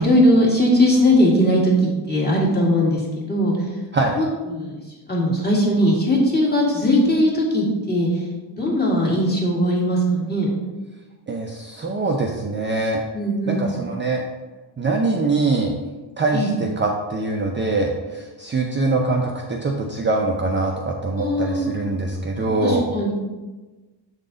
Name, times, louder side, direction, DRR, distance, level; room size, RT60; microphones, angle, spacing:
voice 1, 0.0-3.6 4.2-4.8 5.1-8.2 8.5-10.5 13.1-13.7 16.3-16.5 21.2-21.9 22.6-23.1, equal, 20° left, -4 dB, 1.9 m, -19 dB
voice 2, 11.3-13.0 13.5-14.2 14.8-15.7 16.2-22.9, right 3 dB, 25° right, 0 dB, 0.5 m, -23 dB
7.3 x 3.9 x 3.9 m, 1.2 s
cardioid pair, 120°, 45 cm